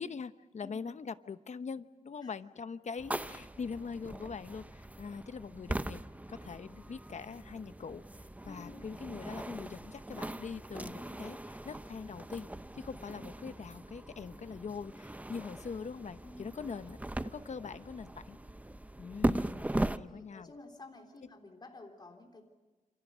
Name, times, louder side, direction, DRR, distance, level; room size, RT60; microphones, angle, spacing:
voice 1, 0.0-6.0 6.3-8.0 8.4-12.5 12.7-17.0 17.2-18.4 19.0-20.5, left 5 dB, 60° left, 12 dB, 1.0 m, -43 dB
sound 1, 3.0-20.0, right 1 dB, 10° right, 0.7 m, -39 dB
voice 2, 8.4-8.9 16.2-16.8 20.0-22.5, left 2 dB, 30° left, 3 dB, 3.4 m, -51 dB
28.5 x 27.5 x 6.3 m, 1.2 s
wide cardioid pair, 110°, 13 cm